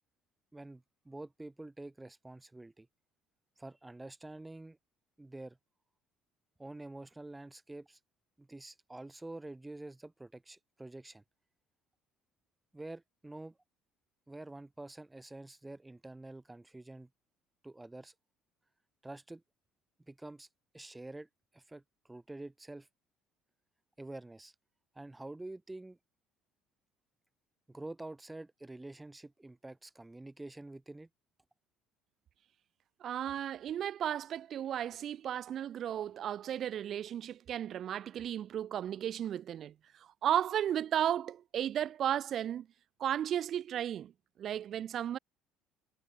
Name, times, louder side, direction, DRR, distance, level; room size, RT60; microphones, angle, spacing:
voice 1, 0.5-2.9 3.6-4.8 5.2-5.6 6.6-8.0 8.4-11.2 12.7-13.6 14.3-17.1 17.6-18.1 19.0-19.4 20.1-20.5 20.7-22.9 24.0-24.5 24.9-26.0 27.7-31.1, right 2 dB, 10° right, 0.7 m, -47 dB
voice 2, 33.0-42.7 43.0-44.1 44.4-45.2, right 10 dB, 55° right, 0.3 m, -34 dB
supercardioid pair, 90°, 0 cm